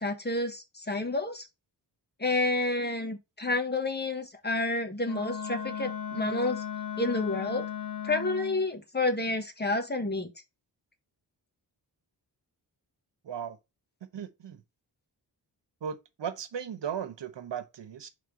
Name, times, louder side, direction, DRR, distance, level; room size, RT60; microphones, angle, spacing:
voice 1, 0.0-1.5 2.2-6.6 7.0-7.7 8.0-10.3, left 2 dB, 25° left, 1.3 m, -29 dB
Wind instrument woodwind instrument, 5.0-8.7, left 9 dB, 75° left, 1.5 m, -36 dB
voice 2, 13.2-13.6 14.0-14.6 15.8-18.1, right 8 dB, 80° right, 1.1 m, -37 dB
5.4 x 3.7 x 5.0 m
wide cardioid pair, 110°, 42 cm